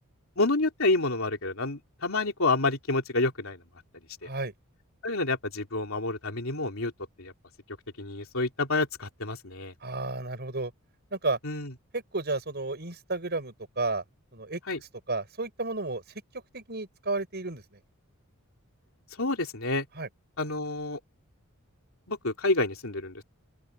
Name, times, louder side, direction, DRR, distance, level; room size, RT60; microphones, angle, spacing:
voice 1, 0.4-3.6 4.2-4.3 5.0-6.9 7.2-7.3 8.0-9.7 11.4-11.7 14.7-14.8 19.2-19.9 20.4-21.0 22.1-23.2, left 2 dB, 65° left, 3.5 m, -28 dB
voice 2, 9.8-10.7 11.1-11.4 11.9-14.0 14.3-14.6 15.1-16.0 16.5-17.8 20.0-20.1, right 3 dB, 50° right, 5.7 m, -32 dB
open air
head